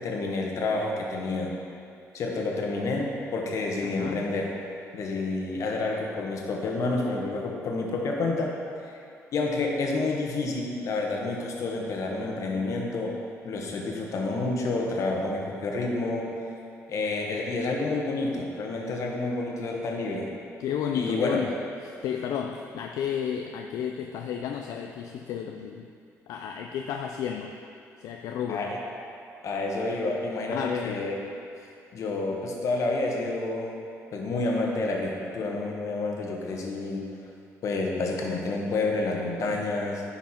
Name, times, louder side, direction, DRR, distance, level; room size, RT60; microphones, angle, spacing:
voice 1, 0.0-1.5 2.1-4.5 4.9-8.9 9.3-13.2 13.4-16.3 16.9-20.3 20.9-21.4 28.5-28.8 29.4-31.2 31.9-33.8 34.1-37.0 37.6-40.0, left 3 dB, 65° left, 0 dB, 1.4 m, -29 dB
voice 2, 3.8-4.3 20.6-25.9 26.3-27.6 28.0-28.7 30.5-31.0, left 8 dB, 80° left, 3 dB, 0.4 m, -32 dB
10.5 x 5.8 x 4.4 m, 2.5 s
cardioid pair, 90°, 6 cm